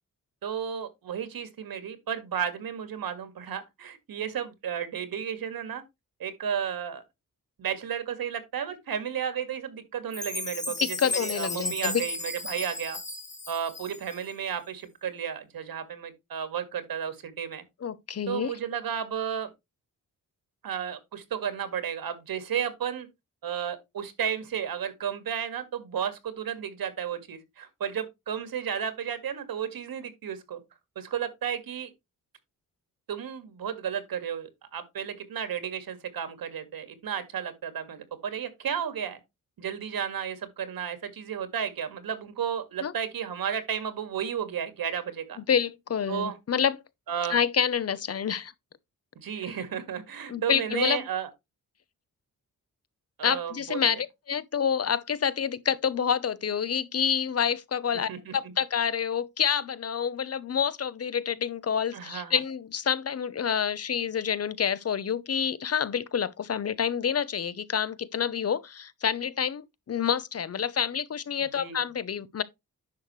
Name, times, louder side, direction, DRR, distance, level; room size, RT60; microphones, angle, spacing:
voice 1, 0.4-5.8 6.2-7.0 7.6-13.0 13.5-17.6 18.3-19.5 20.6-23.1 23.4-30.6 31.0-31.9 33.1-39.2 39.6-45.4 46.1-46.4 47.1-47.4 49.2-51.3 53.2-54.0 58.1-58.4 61.9-62.4 71.6-71.8, right 8 dB, 90° right, 2.0 m, -33 dB
Chime, 10.1-14.3, left 2 dB, 20° left, 2.4 m, -35 dB
voice 2, 10.7-12.0 17.8-18.5 42.8-42.9 45.4-46.8 47.3-48.5 50.3-51.0 53.2-72.4, left 7 dB, 45° left, 0.7 m, -28 dB
10.5 x 6.3 x 3.1 m
wide cardioid pair, 125°, 35 cm